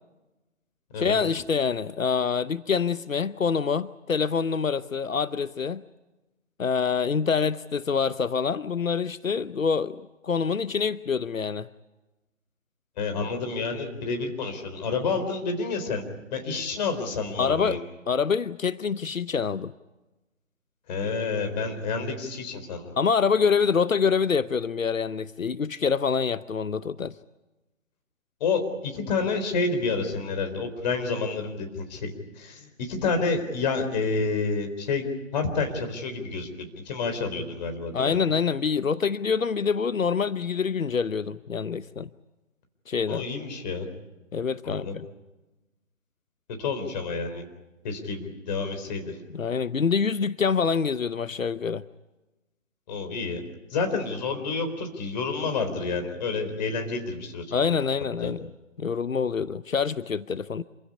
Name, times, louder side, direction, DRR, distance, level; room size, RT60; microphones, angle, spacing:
voice 1, 1.0-5.8 6.6-11.7 17.4-17.8 18.1-19.7 23.0-27.1 37.9-42.1 42.9-43.3 44.3-45.1 49.3-51.8 57.5-58.5 58.8-60.6, left 6 dB, 85° left, 17 dB, 0.8 m, -26 dB
voice 2, 13.0-16.0 16.3-17.8 20.9-23.0 28.4-35.1 35.3-38.2 43.1-43.9 44.6-44.9 46.6-47.4 47.8-49.2 52.9-53.4 53.7-57.8 58.2-58.3, left 4 dB, 35° left, 6 dB, 4.1 m, -29 dB
27.5 x 16.0 x 9.8 m, 1.1 s
figure-of-eight pair, 145°, 39 cm